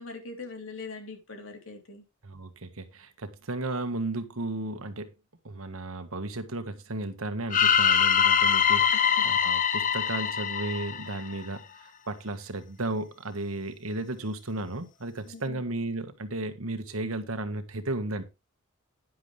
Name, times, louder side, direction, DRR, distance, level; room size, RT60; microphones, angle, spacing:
voice 1, 0.0-2.0 8.9-9.2 15.2-15.6, left 3 dB, 70° left, 3.6 m, -42 dB
voice 2, 2.2-5.1 5.4-18.2, right 2 dB, 85° right, 1.6 m, -34 dB
sound 1, 7.5-11.6, left 7 dB, 40° left, 0.8 m, -23 dB
10.5 x 9.7 x 3.4 m
head